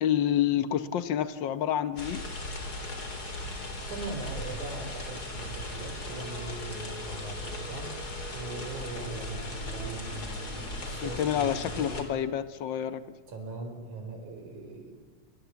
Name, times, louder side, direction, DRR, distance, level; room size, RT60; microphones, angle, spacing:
voice 1, 0.0-2.2 11.0-13.0, left 10 dB, 75° left, 13 dB, 1.0 m, -28 dB
sound 1, 2.0-12.0, left 1 dB, 30° left, 4.0 m, -38 dB
voice 2, 3.9-8.0 8.3-11.9 13.3-14.9, right 3 dB, 75° right, 4 dB, 6.2 m, -40 dB
sound 2, 6.1-12.3, right 1 dB, ahead, 2.9 m, -47 dB
27.0 x 25.5 x 8.2 m, 1.3 s
omnidirectional pair, 3.5 m